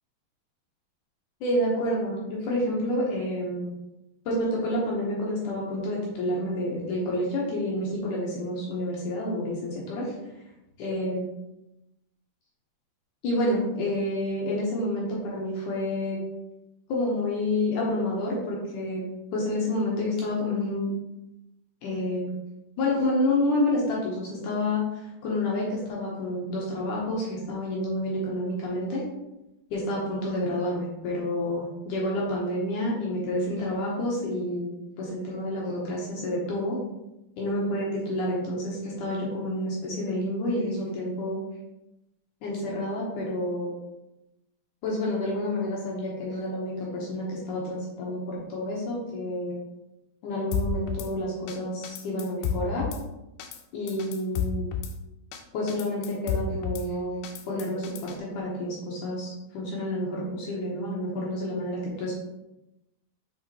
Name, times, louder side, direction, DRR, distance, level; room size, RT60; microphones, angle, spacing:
voice 1, 1.4-3.7 4.3-10.1 10.8-11.2 13.2-16.2 16.9-19.0 19.3-20.9 21.8-22.3 22.8-24.8 25.2-29.0 29.7-36.8 37.4-41.4 42.4-43.7 44.8-49.6 50.2-52.9 53.7-54.6 55.5-57.2 57.5-62.2, left 1 dB, 65° left, -4 dB, 2.4 m, -29 dB
Drum kit / Snare drum, 50.5-51.1 51.5-51.6 51.8-53.0 53.4-53.6 53.9-54.9 55.3-55.4 55.7-56.9 57.2-58.2, left 6 dB, 80° left, 2.4 m, -31 dB
6.4 x 5.0 x 3.1 m, 0.92 s
omnidirectional pair, 4.4 m